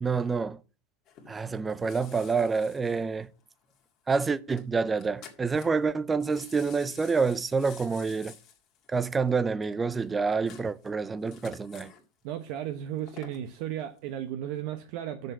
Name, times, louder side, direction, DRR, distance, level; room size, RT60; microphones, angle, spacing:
voice 1, 0.0-0.6 1.3-3.3 4.1-8.3 8.9-11.9, right 4 dB, 15° right, 0.5 m, -28 dB
sound 1, 1.1-3.8 4.1-4.2 4.6-4.7 4.9-5.9 6.2-12.0 12.8-13.5 14.0-14.1, left 7 dB, 35° left, 2.0 m, -51 dB
voice 2, 12.2-15.3, right 11 dB, 55° right, 0.9 m, -35 dB
6.7 x 6.4 x 7.3 m
supercardioid pair, 165°, 0 cm